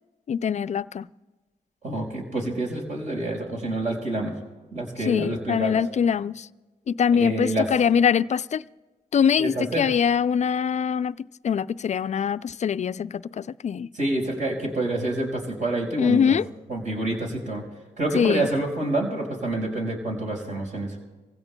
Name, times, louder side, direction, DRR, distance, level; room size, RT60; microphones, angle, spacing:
voice 1, 0.3-1.1 5.1-6.5 6.9-8.6 9.1-13.9 16.0-16.4 18.1-18.5, left 7 dB, 45° left, 0.4 m, -23 dB
voice 2, 1.8-4.3 4.7-5.8 7.1-7.7 9.4-9.9 13.9-16.4 16.7-17.6 18.0-20.9, right 1 dB, 50° right, 4.9 m, -27 dB
26.0 x 16.0 x 2.3 m
cardioid pair, 55°, 16 cm